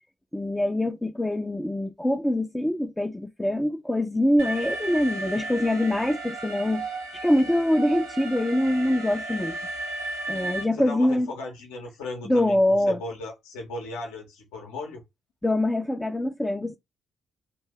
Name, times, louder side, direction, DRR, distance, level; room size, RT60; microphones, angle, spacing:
voice 1, 0.3-6.9 7.2-9.6 10.3-11.3 12.3-13.0 15.4-16.8, left 1 dB, 10° left, 0.4 m, -24 dB
Alarm, 4.4-10.6, right 2 dB, 70° right, 0.7 m, -34 dB
voice 2, 10.7-15.0, left 2 dB, 70° left, 0.6 m, -37 dB
2.6 x 2.1 x 3.5 m
figure-of-eight pair, 40°, 0 cm